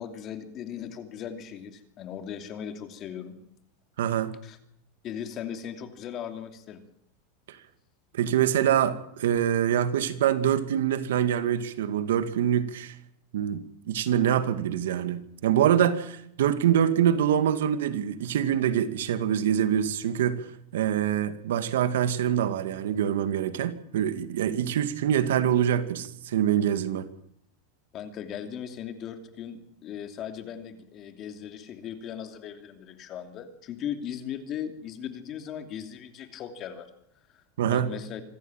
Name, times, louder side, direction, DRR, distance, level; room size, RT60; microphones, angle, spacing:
voice 1, 0.0-3.4 4.4-4.6 5.0-6.8 27.9-36.9 37.3-38.2, left 9 dB, 30° left, 7 dB, 2.8 m, -38 dB
voice 2, 4.0-4.4 7.5-7.6 8.1-13.0 13.3-27.1 37.6-37.9, right 10 dB, 90° right, 11 dB, 2.2 m, -25 dB
26.5 x 14.5 x 9.2 m, 0.73 s
supercardioid pair, 155°, 0 cm